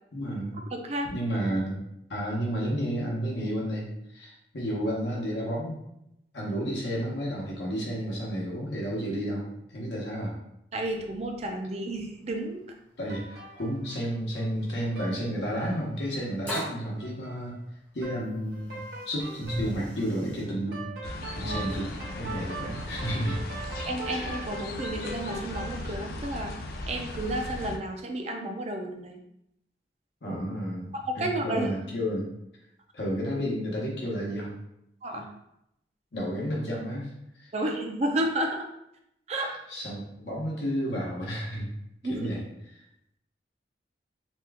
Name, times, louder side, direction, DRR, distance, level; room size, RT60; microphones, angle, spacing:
voice 1, 0.1-0.6 1.1-1.8 2.1-5.8 6.3-9.4 9.7-10.3 13.0-17.6 17.9-23.4 24.0-24.4 30.2-32.3 32.9-34.5 36.1-37.1 37.4-37.5 39.3-41.7 42.1-42.4, equal, 80° left, -4 dB, 0.9 m, -32 dB
voice 2, 0.7-1.1 10.7-12.6 21.4-21.6 23.9-26.5 26.9-29.2 30.9-31.7 35.0-35.3 37.5-38.7 39.3-39.5 42.0-42.3, right 1 dB, 35° right, 3 dB, 0.4 m, -31 dB
sound 1, 12.2-12.3 12.5-12.6 13.4-13.5 15.6-15.7 16.5-16.9 18.1-18.2 18.6-20.4, equal, 10° left, 0.7 m, -36 dB
sound 2, 13.1-14.6 14.9-15.2 15.5-16.0 16.5-16.7 17.0-17.5 18.0-18.2 18.5-25.8, right 3 dB, 65° right, 1.0 m, -41 dB
sound 3, 21.0-27.8, left 1 dB, 55° left, 0.4 m, -37 dB
2.9 x 2.3 x 3.3 m, 0.81 s
head